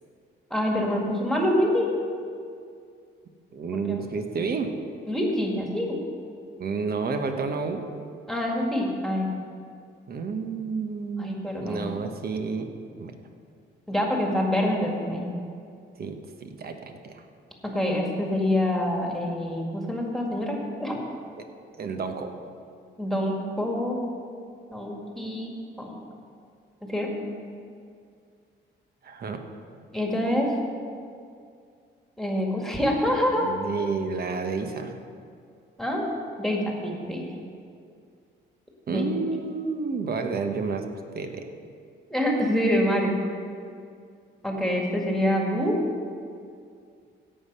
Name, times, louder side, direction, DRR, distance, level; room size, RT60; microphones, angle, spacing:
voice 1, 0.5-1.9 3.9-4.1 5.1-6.0 8.3-9.3 11.2-11.9 13.9-15.3 17.7-21.0 23.0-24.0 24.7-25.5 25.8-26.0 26.9-27.1 29.9-30.5 32.2-33.5 35.8-36.0 36.4-37.3 38.9-39.0 42.1-43.2 44.4-45.8, left 1 dB, ahead, -1 dB, 2.0 m, -26 dB
voice 2, 3.5-4.7 6.6-7.8 10.1-12.7 13.0-13.1 15.9-16.7 17.0-17.2 21.8-22.3 29.0-29.4 33.3-35.0 38.9-40.8 41.1-41.4, right 4 dB, 50° right, 6 dB, 1.1 m, -30 dB
16.5 x 5.7 x 5.5 m, 2.3 s
cardioid pair, 90°, 20 cm